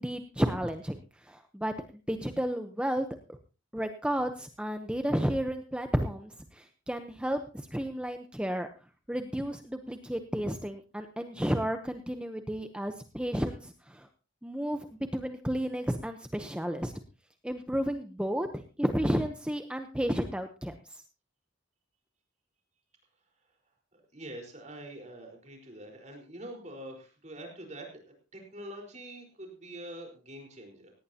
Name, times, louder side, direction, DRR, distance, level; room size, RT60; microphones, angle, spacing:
voice 1, 0.0-3.1 3.7-8.7 9.1-14.1 14.4-14.9 15.1-16.9 17.4-21.0, equal, 5° right, 7 dB, 0.9 m, -32 dB
voice 2, 23.9-28.0 28.3-30.9, right 1 dB, 35° right, 2 dB, 4.6 m, -45 dB
18.0 x 18.0 x 2.9 m, 0.33 s
head